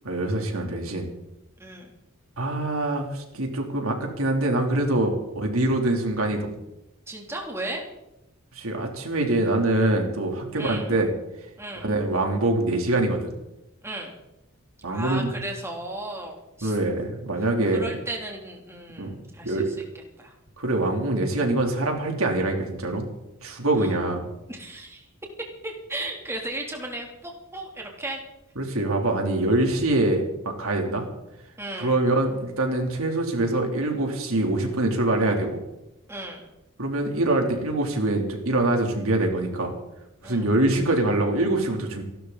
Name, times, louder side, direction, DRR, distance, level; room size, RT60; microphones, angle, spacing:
voice 1, 0.0-1.1 2.4-6.5 8.5-11.1 11.8-13.3 14.8-15.3 16.6-17.9 19.0-19.1 19.4-19.7 20.6-23.0 23.4-24.3 28.6-30.2 30.6-31.0 31.8-35.6 36.8-39.7 40.2-42.0, right 2 dB, 75° right, 2 dB, 3.2 m, -24 dB
voice 2, 1.6-1.9 7.1-7.9 10.5-10.9 11.6-11.9 13.8-14.1 14.9-16.7 17.7-19.6 20.2-20.3 23.8-23.9 24.5-25.0 25.6-28.2 31.6-31.9 36.1-36.4 40.2-40.5, right 2 dB, 10° right, 0 dB, 3.0 m, -35 dB
28.5 x 12.5 x 4.0 m, 0.89 s
head